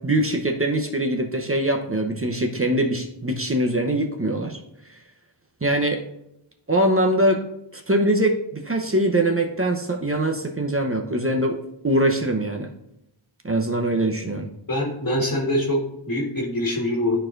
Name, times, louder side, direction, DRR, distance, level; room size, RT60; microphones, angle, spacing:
voice 1, 0.0-4.6 5.6-6.0 6.7-7.4 7.7-12.7 13.4-14.5, right 1 dB, 30° right, 3 dB, 0.8 m, -22 dB
voice 2, 14.7-17.2, left 1 dB, 45° left, -2 dB, 1.6 m, -24 dB
12.0 x 4.5 x 2.5 m, 0.82 s
wide cardioid pair, 55°, 46 cm